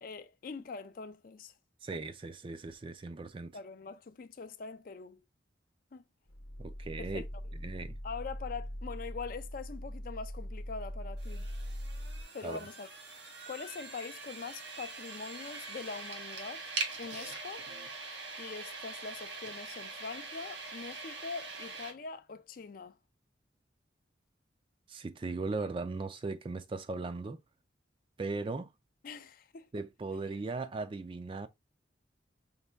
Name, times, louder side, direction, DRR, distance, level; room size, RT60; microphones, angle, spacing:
voice 1, 0.0-1.5 3.5-5.2 5.9-6.0 7.0-7.3 8.0-11.5 12.3-12.9 13.5-16.7 17.0-17.7 18.4-23.0 29.0-29.7, left 4 dB, 50° left, 0.4 m, -43 dB
voice 2, 1.8-3.6 6.6-7.2 7.6-8.0 12.4-12.6 24.9-27.4 28.2-28.7 29.7-31.5, right 3 dB, 30° right, 0.3 m, -38 dB
sound 1, 6.3-12.2, equal, 80° left, 0.8 m, -41 dB
sound 2, 11.2-21.9, right 3 dB, 80° right, 1.4 m, -43 dB
5.3 x 2.3 x 3.4 m
head